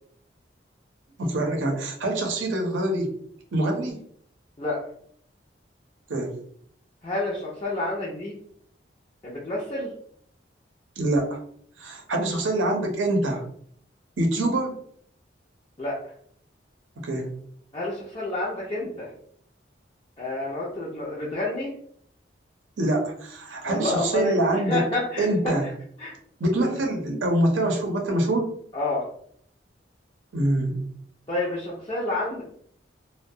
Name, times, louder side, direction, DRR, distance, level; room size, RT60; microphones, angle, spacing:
voice 1, 1.2-3.1 3.5-4.0 6.1-6.3 11.0-11.4 11.8-13.4 14.2-14.8 17.0-17.3 22.8-24.8 25.2-25.7 26.4-28.5 30.3-30.9, right 1 dB, 80° right, 2 dB, 0.6 m, -25 dB
voice 2, 7.0-8.4 9.2-9.9 15.8-16.0 17.7-19.1 20.2-21.7 23.6-24.4 24.7-25.5 26.0-26.1 26.6-26.8 28.7-29.1 31.3-32.4, left 2 dB, 25° left, -7 dB, 0.4 m, -29 dB
2.2 x 2.1 x 2.6 m, 0.62 s
head